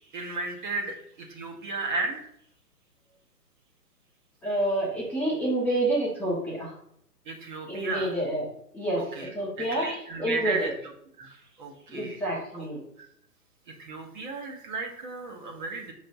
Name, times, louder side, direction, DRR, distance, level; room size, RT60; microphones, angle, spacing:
voice 1, 0.1-2.3 7.3-8.1 8.9-9.3 9.6-10.7 11.2-12.2 12.5-12.7 13.0-13.1 13.8-15.9, right 3 dB, 30° right, 1 dB, 1.0 m, -34 dB
voice 2, 4.4-6.7 7.7-8.5 8.7-10.7 11.9-12.8, right 1 dB, 5° left, -7 dB, 0.9 m, -28 dB
5.8 x 3.3 x 5.2 m, 0.69 s
figure-of-eight pair, 125°, 47 cm